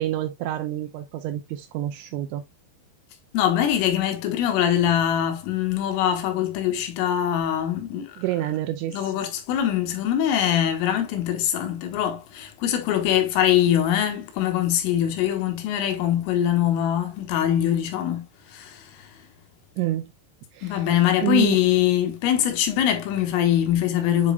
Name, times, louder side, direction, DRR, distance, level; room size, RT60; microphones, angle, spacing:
voice 1, 0.0-2.4 8.2-9.1 19.8-20.1 20.5-20.9 21.2-21.6, right 14 dB, 80° right, 2.7 m, -28 dB
voice 2, 3.3-8.1 8.9-19.1 20.6-24.3, left 11 dB, 90° left, 3.8 m, -23 dB
8.4 x 5.1 x 2.3 m
omnidirectional pair, 5.7 m